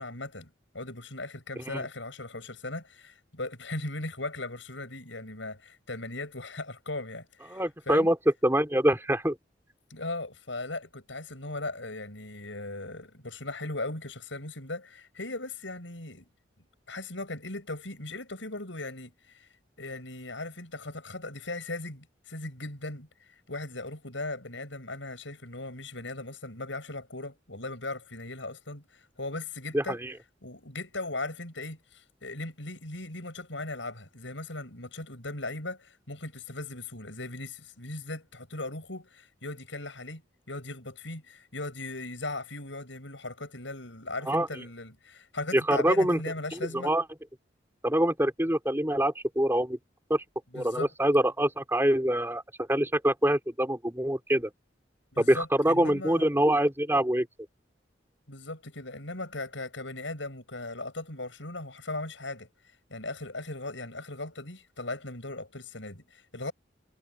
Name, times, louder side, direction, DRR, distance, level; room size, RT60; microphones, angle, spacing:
voice 1, 0.0-8.1 9.9-16.3 16.9-19.5 19.8-30.0 30.4-46.9 50.5-50.9 55.1-56.3 58.3-62.5 62.9-66.5, left 2 dB, 75° left, 7.9 m, -38 dB
voice 2, 7.5-8.2 8.4-9.4 29.7-30.1 44.3-44.5 45.5-46.2 46.5-47.0 47.8-49.8 50.1-50.2 50.5-54.5 55.2-57.3, right 1 dB, 15° right, 4.8 m, -25 dB
head